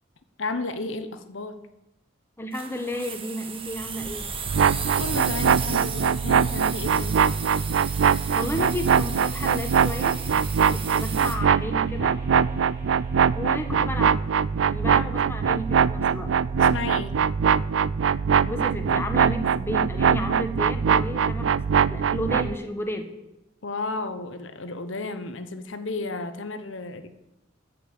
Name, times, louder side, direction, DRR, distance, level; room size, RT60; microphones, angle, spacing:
voice 1, 0.4-1.6 5.0-7.2 16.6-17.2 23.6-27.1, left 3 dB, 75° left, 10 dB, 0.9 m, -33 dB
voice 2, 2.4-4.3 8.3-10.2 10.7-12.1 13.3-14.1 14.6-16.3 18.5-23.1, left 1 dB, 10° left, 5 dB, 1.2 m, -32 dB
sound 1, 2.5-11.4, right 7 dB, 30° right, 1.2 m, -35 dB
sound 2, 3.5-15.3, equal, 15° right, 4.7 m, -47 dB
sound 3, 4.5-22.6, right 7 dB, 75° right, 0.4 m, -22 dB
13.5 x 5.5 x 8.6 m, 0.90 s
head